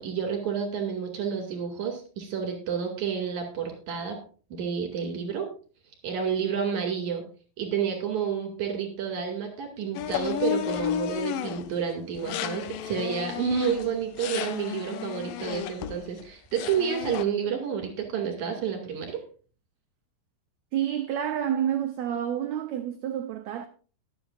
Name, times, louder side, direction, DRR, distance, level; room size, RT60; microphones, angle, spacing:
voice 1, 0.0-4.2 4.5-5.5 6.0-7.2 7.6-19.2, right 7 dB, 60° right, 3.5 m, -30 dB
sound 1, 9.9-11.7 12.1-16.3 16.5-17.2, left 10 dB, 80° left, 2.3 m, -32 dB
voice 2, 20.7-23.7, right 10 dB, 85° right, 1.6 m, -29 dB
22.0 x 8.1 x 2.4 m
omnidirectional pair, 4.0 m